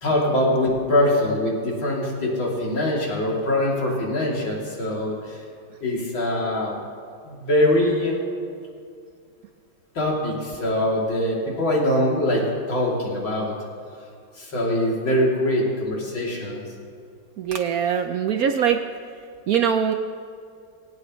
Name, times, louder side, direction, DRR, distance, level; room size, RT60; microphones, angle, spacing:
voice 1, 0.0-5.4 5.8-6.8 7.2-8.2 10.0-13.5 14.4-16.6, left 1 dB, 85° left, -4 dB, 3.8 m, -23 dB
voice 2, 17.4-18.8 19.5-19.9, right 8 dB, 65° right, 6 dB, 0.9 m, -22 dB
19.5 x 17.5 x 3.1 m, 2.3 s
omnidirectional pair, 2.1 m